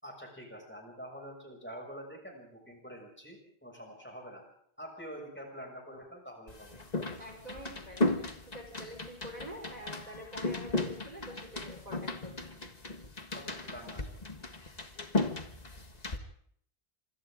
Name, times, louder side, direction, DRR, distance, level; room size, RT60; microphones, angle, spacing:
voice 1, 0.0-4.4 4.8-6.8 13.3-14.0, equal, 10° left, 0 dB, 6.9 m, -46 dB
sound 1, 6.5-16.2, left 2 dB, 40° left, 1.8 m, -36 dB
voice 2, 7.2-12.5, equal, 40° right, 1 dB, 4.9 m, -47 dB
27.0 x 25.0 x 3.8 m, 0.65 s
omnidirectional pair, 1.1 m